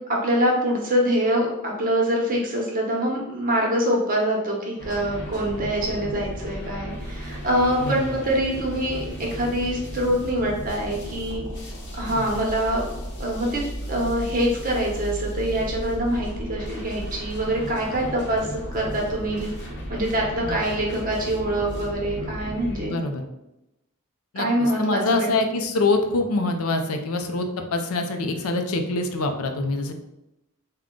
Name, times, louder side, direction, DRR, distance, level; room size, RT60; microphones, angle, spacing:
voice 1, 0.1-11.4 12.0-12.8 13.2-23.0 24.4-25.3, right 1 dB, 40° right, -1 dB, 0.9 m, -25 dB
sound 1, 4.8-22.9, equal, 55° left, 0.8 m, -34 dB
voice 2, 7.8-8.1 12.1-12.3 20.4-20.6 22.8-23.2 24.3-29.9, left 2 dB, 85° left, 6 dB, 0.5 m, -25 dB
3.6 x 2.2 x 3.6 m, 0.90 s
head